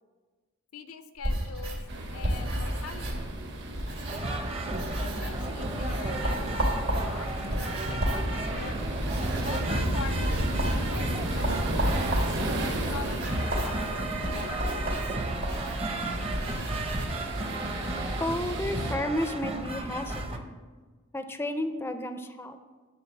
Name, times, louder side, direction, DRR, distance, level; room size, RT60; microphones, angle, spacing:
voice 1, 0.7-3.3 5.0-8.8 9.4-11.9 12.7-15.4, left 5 dB, 85° left, 10 dB, 0.6 m, -43 dB
sound 1, 1.2-4.4 4.7-5.5 5.8-17.1, equal, 75° right, 2.6 m, -33 dB
sound 2, 1.9-18.9, right 1 dB, 55° right, 1.2 m, -34 dB
sound 3, 4.1-20.4, right 2 dB, 30° right, 0.7 m, -34 dB
voice 2, 18.2-20.5 21.1-22.6, left 1 dB, 10° left, 8 dB, 0.4 m, -32 dB
10.0 x 3.9 x 7.0 m, 1.4 s
head